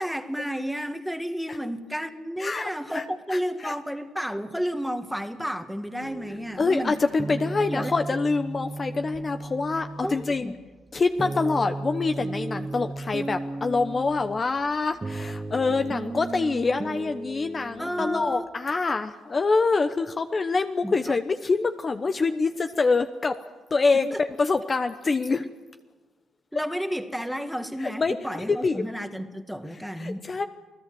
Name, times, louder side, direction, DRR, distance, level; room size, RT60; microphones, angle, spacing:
voice 1, 0.0-6.9 7.7-7.9 10.0-10.5 17.8-18.5 20.8-20.9 23.9-24.2 25.4-25.5 26.5-30.3, equal, ahead, 7 dB, 1.8 m, -31 dB
voice 2, 2.4-3.0 3.3-3.7 6.6-10.5 10.9-23.4 23.7-25.4 27.8-28.8 30.0-30.4, left 4 dB, 35° left, 8 dB, 1.0 m, -25 dB
sound 1, 6.0-18.3, right 2 dB, 20° right, 1.2 m, -35 dB
28.0 x 18.0 x 7.8 m, 1.3 s
cardioid pair, 90°, 0 cm